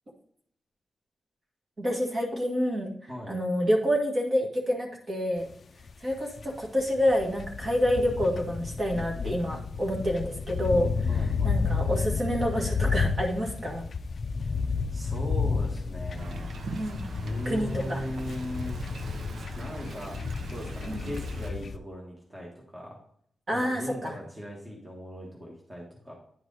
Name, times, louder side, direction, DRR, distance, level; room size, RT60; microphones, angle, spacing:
voice 1, 1.8-2.9 3.3-5.5 6.0-13.9 16.7-17.1 17.5-18.0 20.9-21.0 23.5-24.1, equal, 35° right, -1 dB, 1.8 m, -28 dB
sound 1, 5.5-5.6 5.9-21.8, left 5 dB, 45° left, 0.4 m, -31 dB
voice 2, 11.1-11.5 14.4-14.5 14.9-16.5 17.2-18.9 19.6-20.2 20.5-23.0 23.5-26.1, equal, 15° right, -3 dB, 1.5 m, -38 dB
Wind, 16.2-21.5, right 4 dB, 70° right, 0.7 m, -42 dB
10.0 x 4.7 x 3.9 m, 0.66 s
wide cardioid pair, 180°, 0 cm